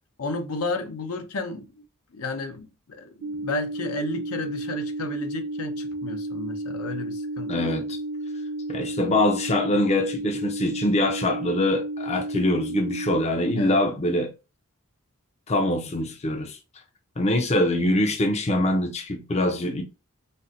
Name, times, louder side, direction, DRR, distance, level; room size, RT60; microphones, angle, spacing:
voice 1, 0.2-1.8 2.1-7.5 13.5-13.8, left 3 dB, 75° left, 0.6 m, -32 dB
sound 1, 3.2-13.2, right 1 dB, 75° right, 0.8 m, -32 dB
voice 2, 7.5-8.0 8.7-14.3 15.5-16.6 17.2-19.8, left 1 dB, 30° left, 0.5 m, -24 dB
4.1 x 2.1 x 2.4 m
head